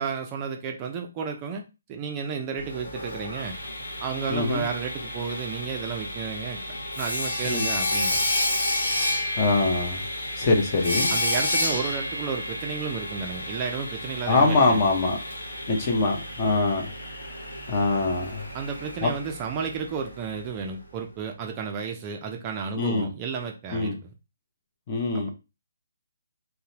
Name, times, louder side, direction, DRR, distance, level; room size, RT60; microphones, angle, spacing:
voice 1, 0.0-1.6 1.9-3.6 4.0-6.6 7.0-8.2 11.1-14.8 18.5-24.0, right 6 dB, 25° right, 0.3 m, -32 dB
Sawing, 2.6-20.4, left 1 dB, 85° left, 0.9 m, -31 dB
voice 2, 4.3-4.6 7.4-7.6 9.4-10.0 10.4-11.2 14.3-15.2 15.7-16.9 17.2-17.4 17.7-18.5 19.0-19.1 22.7-23.1 23.7-24.0 24.9-25.3, left 3 dB, 30° left, 0.7 m, -23 dB
2.7 x 2.0 x 2.7 m
hypercardioid pair, 155°, 0 cm